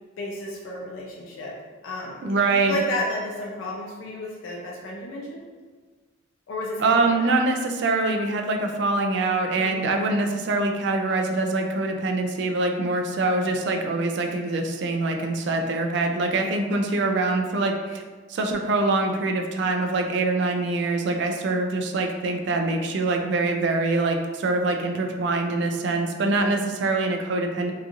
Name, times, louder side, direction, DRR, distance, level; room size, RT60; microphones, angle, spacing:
voice 1, 0.2-1.5 1.8-5.4 6.5-7.3 9.6-9.9, left 1 dB, 80° left, -3 dB, 0.5 m, -32 dB
voice 2, 2.2-2.8 6.8-18.0 18.3-27.7, right 3 dB, 60° right, 3 dB, 0.3 m, -24 dB
2.8 x 2.4 x 2.5 m, 1.4 s
head